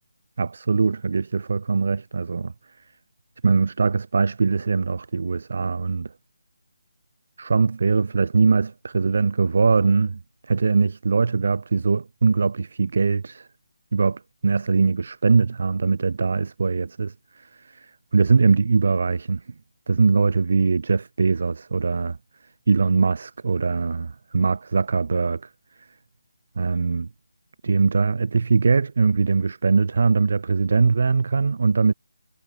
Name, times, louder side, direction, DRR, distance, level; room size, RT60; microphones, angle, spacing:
voice 1, 0.4-2.5 3.4-6.1 7.4-13.5 13.9-19.4 19.9-22.2 22.7-25.5 26.6-27.1 27.6-31.9, right 4 dB, 55° right, 1.3 m, -21 dB
figure-of-eight pair, 155°, 0 cm